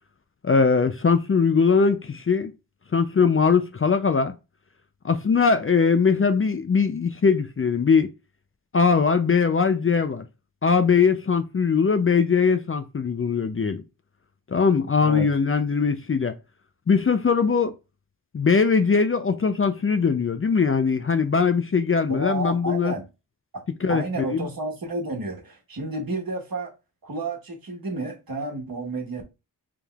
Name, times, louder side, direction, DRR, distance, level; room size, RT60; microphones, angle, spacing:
voice 1, 0.4-2.5 2.9-4.3 5.0-8.1 8.7-10.3 10.6-13.8 14.5-16.3 16.9-17.7 18.3-22.9 23.8-24.5, left 5 dB, 35° left, 0.4 m, -21 dB
voice 2, 22.1-23.1 23.5-23.6 23.9-26.7 27.0-29.2, right 2 dB, 60° right, 1.2 m, -31 dB
5.0 x 3.4 x 2.3 m
wide cardioid pair, 70°, 40 cm